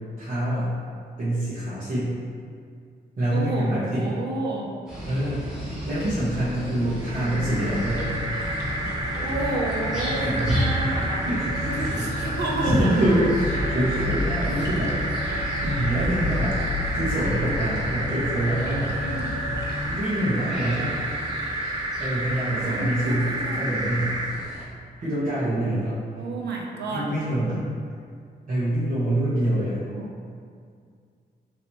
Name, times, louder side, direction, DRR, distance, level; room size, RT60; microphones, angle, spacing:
voice 1, 0.2-0.7 1.2-2.1 3.2-4.1 5.1-5.5 5.8-8.1 10.1-10.6 11.2-12.1 12.4-15.0 15.6-16.6 16.9-19.0 19.9-21.0 22.0-24.2 25.0-26.0 26.9-27.6 28.5-29.8, right 1 dB, 45° right, -13 dB, 1.2 m, -25 dB
voice 2, 3.3-4.7 6.8-7.5 9.2-11.3 11.6-13.2 13.9-14.1 14.4-14.8 19.0-19.4 22.6-23.6 26.1-27.1 29.8-30.1, right 2 dB, 75° right, -1 dB, 0.7 m, -31 dB
sound 1, 4.9-24.6, equal, 5° right, 1.4 m, -37 dB
sound 2, 7.0-24.4, right 1 dB, 25° right, 0.6 m, -31 dB
sound 3, 7.7-19.9, left 1 dB, 90° left, 0.7 m, -31 dB
4.1 x 3.1 x 3.0 m, 2.2 s
wide cardioid pair, 115°, 17 cm